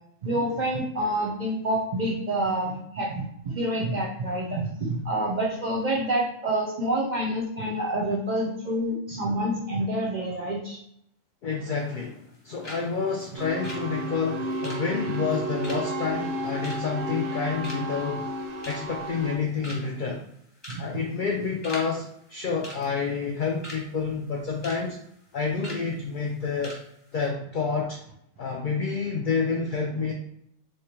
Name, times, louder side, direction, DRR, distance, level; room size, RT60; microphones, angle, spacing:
voice 1, 0.2-10.8 20.7-20.9, right 1 dB, 45° right, -2 dB, 0.6 m, -27 dB
voice 2, 11.4-18.3 18.7-20.2 20.8-25.0 25.3-26.8 27.1-28.0 28.4-30.1, left 5 dB, 75° left, 0 dB, 0.4 m, -29 dB
sound 1, 11.8-12.4 12.6-12.9 13.1-17.4 17.6-18.0 18.4-19.0 19.3-19.4 19.6-20.0 20.6-20.9 21.1-21.9 22.1-22.3 22.6-23.8 24.2-24.8 25.1-25.3 25.6-25.8 26.3-26.4 26.6-26.8 27.1-27.3, equal, 20° left, 1.1 m, -41 dB
sound 2, 13.4-19.4, right 1 dB, 90° right, 1.0 m, -32 dB
3.1 x 2.4 x 4.3 m, 0.72 s
omnidirectional pair, 1.4 m